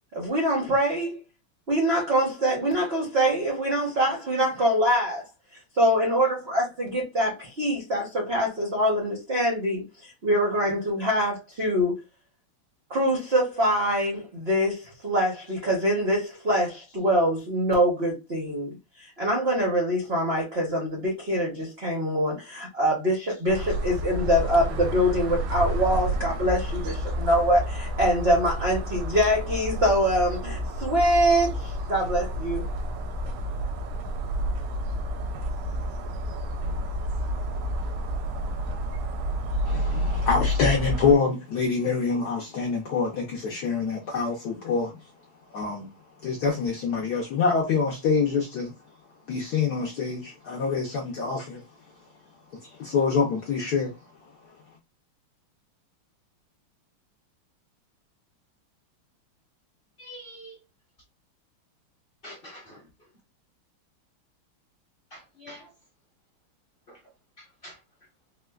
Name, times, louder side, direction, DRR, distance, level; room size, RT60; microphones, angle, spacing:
voice 1, 0.1-1.2 1.7-5.3 5.7-12.0 12.9-32.6, equal, 65° right, 0.6 m, -24 dB
sound 1, 23.5-41.1, equal, 90° right, 1.6 m, -30 dB
voice 2, 39.7-45.0 45.5-45.9 46.2-48.7 49.3-51.6 52.6-53.9, left 5 dB, 70° left, 0.9 m, -26 dB
voice 3, 60.0-60.6 62.2-62.8 65.1-65.7 66.9-67.0 67.4-67.8, equal, 40° left, 0.8 m, -45 dB
4.3 x 2.1 x 2.3 m
omnidirectional pair, 2.4 m